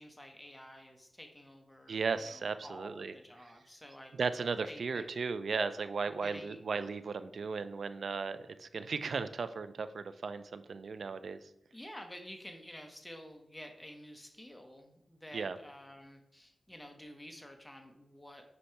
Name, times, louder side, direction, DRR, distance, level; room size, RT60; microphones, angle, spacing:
voice 1, 0.0-4.1 4.7-5.0 6.2-6.6 11.7-18.4, equal, 10° left, 3 dB, 0.8 m, -50 dB
voice 2, 1.9-3.1 4.2-11.5 15.3-15.6, right 5 dB, 75° right, 12 dB, 0.4 m, -36 dB
8.2 x 2.8 x 4.4 m, 0.83 s
cardioid pair, 70°, 0 cm